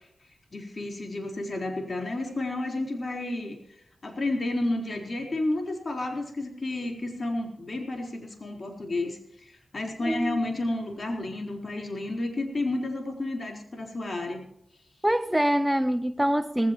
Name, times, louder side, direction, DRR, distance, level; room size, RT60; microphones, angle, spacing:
voice 1, 0.5-3.6 4.0-14.5, left 2 dB, 50° left, 4.0 m, -31 dB
voice 2, 10.0-10.4 15.0-16.7, right 1 dB, 5° right, 0.6 m, -25 dB
18.5 x 16.0 x 3.0 m
cardioid pair, 55°, 0 cm